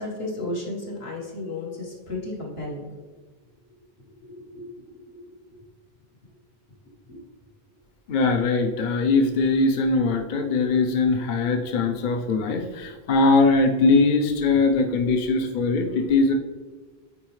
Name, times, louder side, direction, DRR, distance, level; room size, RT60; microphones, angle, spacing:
voice 1, 0.0-2.9 4.3-5.2 5.5-5.6 7.1-7.2, left 2 dB, 75° left, -3 dB, 1.8 m, -34 dB
voice 2, 8.1-16.3, left 3 dB, 55° left, 4 dB, 0.7 m, -21 dB
8.8 x 4.2 x 3.2 m, 1.4 s
omnidirectional pair, 1.1 m